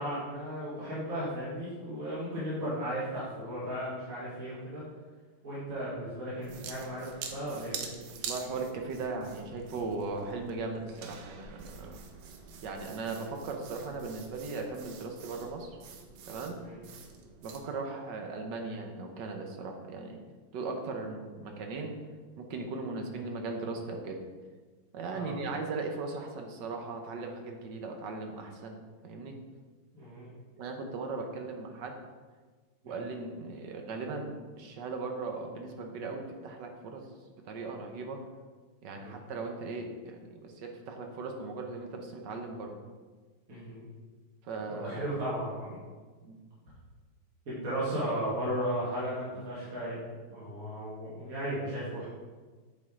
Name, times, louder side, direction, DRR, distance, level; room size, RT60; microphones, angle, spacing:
voice 1, 0.0-4.8 5.4-8.0 16.6-16.8 25.1-25.4 29.9-30.3 32.8-33.0 38.9-39.2 43.5-43.8 44.7-45.7 47.5-50.0 50.3-52.1, equal, 45° right, -9 dB, 2.2 m, -35 dB
sound 1, 6.4-17.6, right 6 dB, 85° right, 1.5 m, -46 dB
voice 2, 8.3-12.0 12.6-15.8 16.3-16.6 17.4-20.2 20.5-21.9 22.4-24.2 24.9-29.3 30.6-32.0 32.9-37.1 37.4-38.3 38.8-42.7 44.4-45.0 46.2-46.4, right 3 dB, 65° right, 3 dB, 1.3 m, -38 dB
8.5 x 4.6 x 3.6 m, 1.4 s
omnidirectional pair, 2.3 m